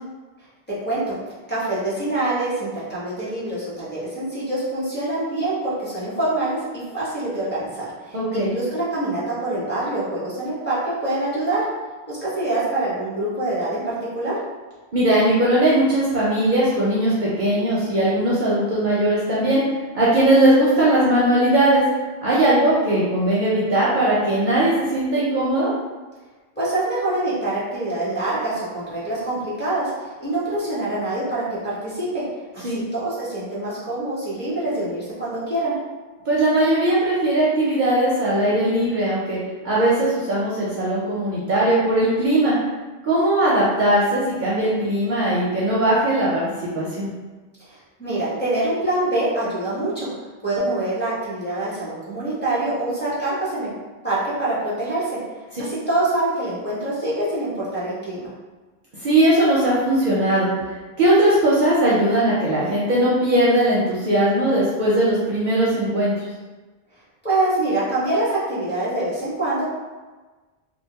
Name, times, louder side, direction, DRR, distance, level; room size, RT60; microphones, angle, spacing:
voice 1, 0.8-1.1 1.5-11.6 12.1-14.4 26.6-32.2 32.5-35.7 47.7-50.1 50.4-53.7 54.0-55.0 55.6-58.3 67.2-69.6, right 2 dB, 10° left, -11 dB, 0.9 m, -25 dB
voice 2, 8.1-8.5 14.9-19.6 19.9-21.8 22.2-25.7 32.6-32.8 36.3-39.4 39.6-42.5 43.0-46.4 46.7-47.1 59.0-60.5 61.0-66.1, right 1 dB, 55° right, -7 dB, 0.6 m, -19 dB
2.5 x 2.2 x 2.7 m, 1.3 s
omnidirectional pair, 1.1 m